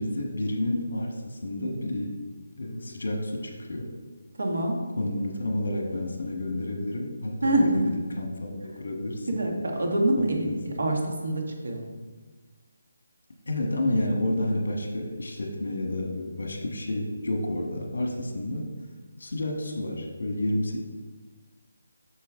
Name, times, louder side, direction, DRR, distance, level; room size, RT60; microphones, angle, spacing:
voice 1, 0.0-2.2 2.6-4.0 5.0-9.4 10.2-10.8 13.5-18.7 19.2-20.8, left 1 dB, 60° left, 3 dB, 1.5 m, -30 dB
voice 2, 4.4-4.8 7.4-7.9 9.3-11.8, right 1 dB, 60° right, 1 dB, 1.6 m, -25 dB
8.3 x 6.6 x 3.7 m, 1.4 s
hypercardioid pair, 180°, 0 cm